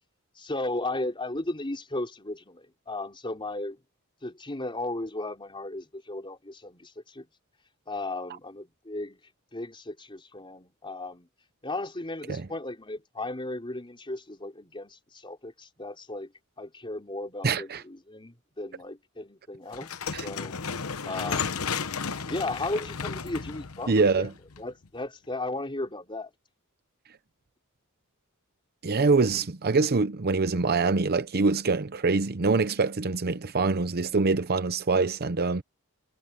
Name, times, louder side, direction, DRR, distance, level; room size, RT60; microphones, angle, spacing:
voice 1, 0.4-3.8 4.2-7.2 7.9-9.2 9.5-11.3 11.6-16.3 16.6-19.9 20.2-20.5 21.0-21.7 22.2-24.3 24.6-26.3, left 2 dB, 25° left, 4.2 m, -35 dB
voice 2, 17.4-17.8 20.1-20.3 23.9-24.3 28.8-35.6, right 4 dB, 45° right, 0.7 m, -24 dB
sound 1, 19.7-24.9, left 6 dB, 75° left, 1.0 m, -33 dB
head